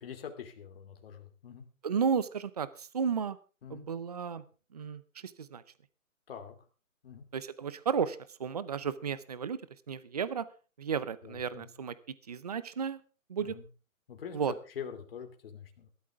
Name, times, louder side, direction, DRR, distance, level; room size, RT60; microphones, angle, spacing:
voice 1, 0.0-1.7 3.6-3.9 6.3-6.6 7.0-7.3 11.2-11.7 13.4-13.6 14.1-15.9, left 7 dB, 45° left, 5 dB, 2.8 m, -44 dB
voice 2, 1.8-3.4 3.7-4.4 4.7-5.6 7.3-9.6 9.9-10.5 10.8-11.9 12.3-13.0 13.3-13.6 14.3-14.5, right 6 dB, 30° right, 17 dB, 0.6 m, -33 dB
18.5 x 13.0 x 3.6 m, 0.35 s
hypercardioid pair, 170°, 41 cm